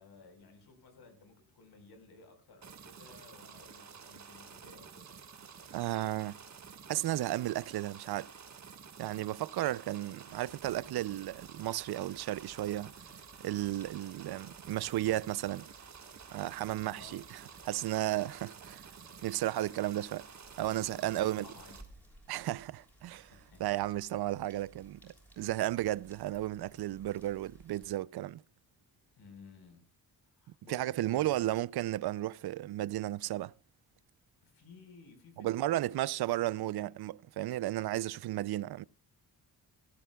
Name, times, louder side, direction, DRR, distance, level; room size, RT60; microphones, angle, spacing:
voice 1, 0.0-5.1 16.7-17.2 20.9-22.0 23.2-23.9 29.2-29.8 30.2-31.5 34.4-36.9, left 4 dB, 85° left, 4.5 m, -56 dB
sound 1, 2.6-21.8, right 6 dB, 45° right, 1.5 m, -51 dB
voice 2, 5.7-6.4 6.9-8.3 9.0-12.9 13.4-15.7 16.3-18.9 19.2-20.2 20.6-21.5 22.3-23.3 23.6-28.4 30.7-33.5 35.4-38.8, right 14 dB, 80° right, 0.5 m, -34 dB
sound 2, 10.3-27.9, right 1 dB, 5° left, 6.8 m, -61 dB
18.5 x 15.0 x 2.3 m
wide cardioid pair, 125°, 38 cm